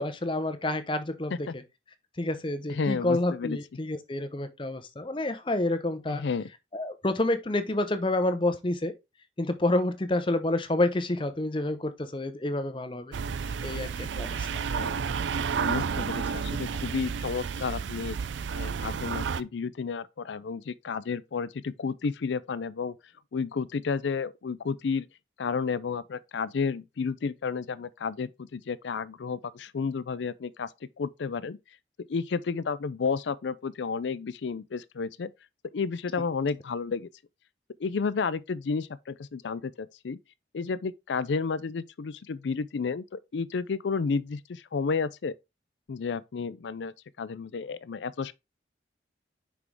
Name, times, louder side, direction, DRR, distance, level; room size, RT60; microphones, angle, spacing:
voice 1, 0.0-1.5 2.2-6.2 6.7-8.9 9.4-13.1 13.6-14.5, left 2 dB, 25° left, 0.7 m, -28 dB
voice 2, 2.7-3.6 6.1-6.5 14.7-14.9 15.6-18.2 18.5-22.9 23.3-25.1 25.4-30.7 31.0-31.6 32.1-35.3 35.7-37.1 37.8-40.2 40.5-45.3 45.9-48.3, left 5 dB, 75° left, 0.4 m, -31 dB
sound 1, 13.1-19.4, right 6 dB, 80° right, 0.4 m, -31 dB
6.0 x 4.6 x 3.6 m
head